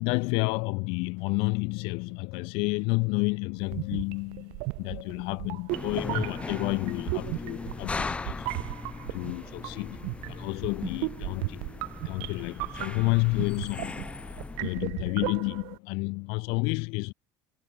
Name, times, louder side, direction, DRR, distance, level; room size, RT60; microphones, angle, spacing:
voice 1, 0.0-8.5 9.1-11.6 12.0-14.3 14.6-17.1, left 30 dB, 80° left, 0.7 m, -30 dB
sound 1, 1.2-10.5, right 19 dB, 60° right, 7.0 m, -63 dB
sound 2, 3.6-15.8, right 32 dB, 85° right, 2.5 m, -36 dB
sound 3, 5.7-14.9, left 4 dB, 15° left, 2.6 m, -38 dB
cardioid pair, 170°, 9 cm